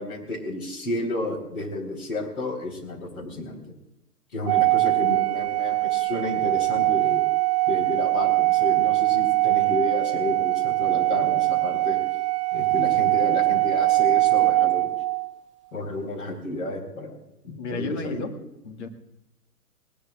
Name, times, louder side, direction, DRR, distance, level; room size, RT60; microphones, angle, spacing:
voice 1, 0.0-3.7 4.3-7.2 7.7-12.0 12.5-14.9 15.7-17.2 17.4-18.2, left 2 dB, 65° left, 3 dB, 4.3 m, -31 dB
Organ, 4.5-15.3, right 20 dB, 20° right, 0.5 m, -22 dB
voice 2, 17.6-18.3 18.6-18.9, left 3 dB, 45° left, 4 dB, 2.0 m, -32 dB
19.5 x 19.0 x 2.4 m, 0.91 s
figure-of-eight pair, 115°, 46 cm